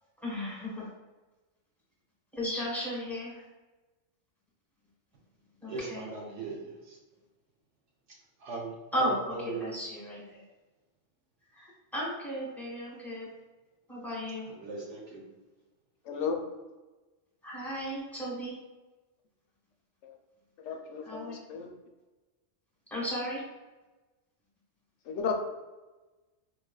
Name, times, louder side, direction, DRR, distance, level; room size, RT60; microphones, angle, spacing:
voice 1, 0.2-0.9 2.3-3.4 5.6-6.0 8.9-10.4 11.5-13.3 13.9-14.5 17.4-18.5 21.0-21.4 22.9-23.4, equal, ahead, -6 dB, 1.1 m, -35 dB
voice 2, 5.7-7.0 8.4-9.7 14.5-15.2, right 3 dB, 90° right, -2 dB, 1.2 m, -39 dB
voice 3, 16.0-16.4 20.0-20.2 20.6-21.7 25.0-25.3, left 6 dB, 85° left, 3 dB, 0.9 m, -34 dB
4.6 x 2.2 x 2.3 m, 1.2 s
omnidirectional pair, 1.2 m